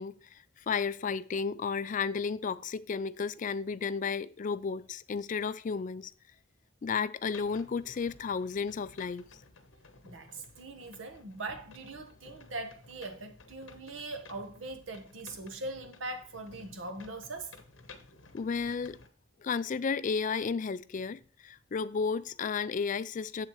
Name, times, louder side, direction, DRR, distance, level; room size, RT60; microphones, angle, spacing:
voice 1, 0.0-6.1 6.8-9.2 18.3-19.0 19.4-23.5, left 5 dB, 40° left, 0.4 m, -33 dB
sound 1, 7.3-19.1, left 3 dB, 70° left, 1.0 m, -55 dB
voice 2, 10.0-17.6, right 2 dB, 70° right, 1.1 m, -41 dB
7.7 x 7.4 x 3.1 m
head